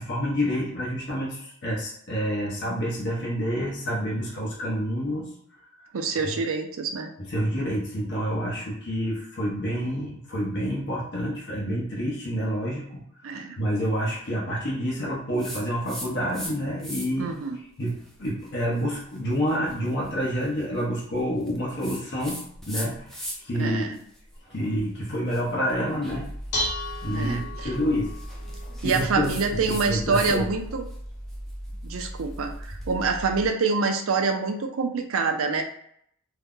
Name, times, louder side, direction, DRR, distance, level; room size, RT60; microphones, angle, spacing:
voice 1, 0.0-5.3 6.2-6.3 7.2-13.0 13.6-17.3 17.8-22.4 22.7-24.0 24.5-26.3 27.0-28.1 28.8-29.3 29.7-30.5, equal, 50° left, -5 dB, 0.9 m, -28 dB
voice 2, 5.9-7.1 13.2-13.6 17.2-17.6 23.6-23.9 27.1-27.7 28.8-30.9 31.8-35.6, right 4 dB, 60° right, 5 dB, 0.5 m, -26 dB
sound 1, 15.4-16.5 16.8-17.3 17.8-23.6 23.9-30.4 30.7-32.9, equal, ahead, 0.4 m, -41 dB
Dishes pots and pans, 26.1-33.5, equal, 80° left, 0.8 m, -35 dB
2.7 x 2.2 x 3.6 m, 0.69 s
head